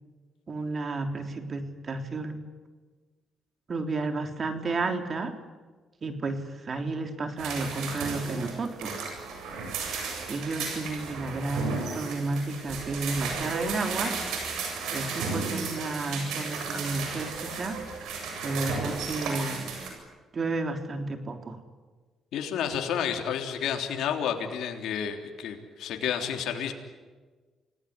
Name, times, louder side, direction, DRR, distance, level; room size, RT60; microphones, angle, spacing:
voice 1, 0.5-2.4 3.7-5.4 6.0-9.0 10.3-14.2 14.9-17.8 18.4-19.7 20.3-21.6, right 3 dB, 40° right, 6 dB, 3.7 m, -32 dB
sound 1, 7.4-19.9, right 4 dB, 85° right, 7.7 m, -34 dB
voice 2, 22.3-26.7, left 8 dB, 80° left, 4 dB, 3.4 m, -30 dB
29.0 x 18.5 x 9.8 m, 1.4 s
cardioid pair, 90°, 0 cm